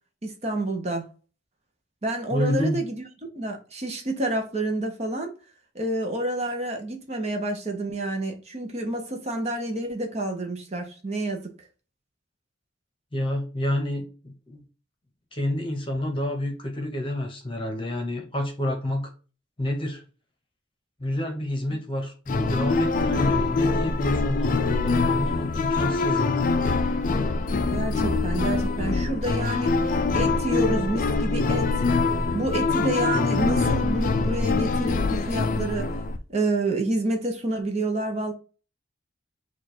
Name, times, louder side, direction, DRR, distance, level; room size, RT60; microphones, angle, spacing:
voice 1, 0.2-1.0 2.0-3.0 3.3-5.3 5.7-11.5 27.7-29.8 30.1-31.8 32.3-36.0 36.3-38.3, right 2 dB, 35° right, 0.8 m, -28 dB
voice 2, 2.3-2.8 13.1-14.6 15.3-19.1 19.6-20.0 21.0-26.4, left 1 dB, 25° left, 0.9 m, -29 dB
sound 1, 22.3-36.2, left 3 dB, 40° left, 0.4 m, -24 dB
4.5 x 2.4 x 4.3 m
head